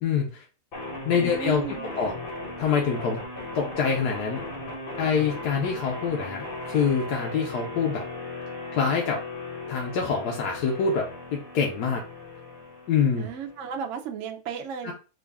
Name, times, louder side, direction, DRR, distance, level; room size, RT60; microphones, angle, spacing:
voice 1, 0.0-0.4 1.0-1.6 2.0-2.1 2.6-3.2 3.5-4.4 5.0-8.0 8.8-9.2 9.7-11.0 11.3-12.0 12.9-13.3 14.8-14.9, left 6 dB, 80° left, 1.2 m, -25 dB
sound 1, 0.7-13.7, left 2 dB, 45° left, 0.9 m, -37 dB
voice 2, 1.1-2.0 13.2-14.9, right 7 dB, 65° right, 0.8 m, -34 dB
3.8 x 2.5 x 3.4 m
omnidirectional pair, 1.7 m